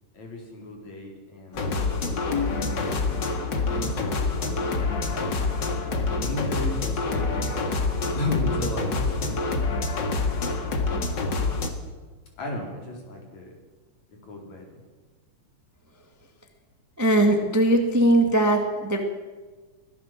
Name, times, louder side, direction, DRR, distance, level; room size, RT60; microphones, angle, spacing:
voice 1, 0.1-2.7 3.5-5.6 5.9-7.4 8.1-9.7 12.4-13.5 14.2-14.7, left 2 dB, 60° left, 1 dB, 5.5 m, -35 dB
sound 1, 1.5-11.7, left 3 dB, 40° left, 2.2 m, -26 dB
voice 2, 17.0-19.0, right 1 dB, 5° right, 4 dB, 1.3 m, -20 dB
24.0 x 16.5 x 7.6 m, 1.4 s
omnidirectional pair, 3.8 m